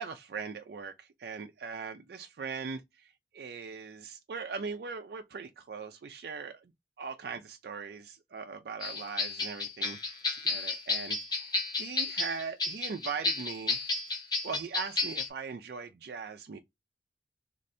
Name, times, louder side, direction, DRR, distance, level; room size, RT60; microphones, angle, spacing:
voice 1, 0.0-6.7 7.0-13.8 14.4-16.6, right 5 dB, 60° right, 0.4 m, -40 dB
sound 1, 8.8-15.3, left 3 dB, 25° left, 0.9 m, -32 dB
3.2 x 2.5 x 2.5 m
head